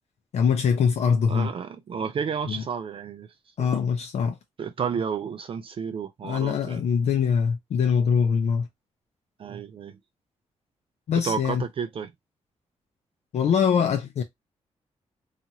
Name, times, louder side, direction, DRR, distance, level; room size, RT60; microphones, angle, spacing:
voice 1, 0.3-1.5 2.5-2.6 3.6-4.4 6.2-8.7 11.1-11.6 13.3-14.2, left 6 dB, 70° left, 0.5 m, -23 dB
voice 2, 1.3-3.3 3.6-3.7 4.6-6.8 9.4-10.0 11.2-12.1, right 6 dB, 50° right, 0.4 m, -31 dB
2.8 x 2.4 x 2.7 m
cardioid pair, 75°, 12 cm